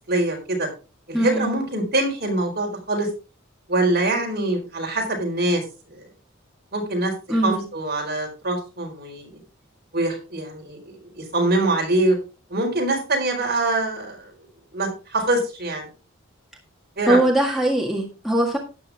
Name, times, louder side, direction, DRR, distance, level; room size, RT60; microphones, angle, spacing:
voice 1, 0.1-0.7 1.1-3.1 3.7-6.1 6.7-9.4 9.9-12.2 12.5-14.3 14.7-15.9 17.0-17.2, right 2 dB, 45° right, 1 dB, 4.3 m, -24 dB
voice 2, 1.1-1.5 7.3-7.6 17.1-18.6, right 1 dB, ahead, -1 dB, 1.8 m, -21 dB
12.5 x 9.5 x 3.5 m, 0.32 s
head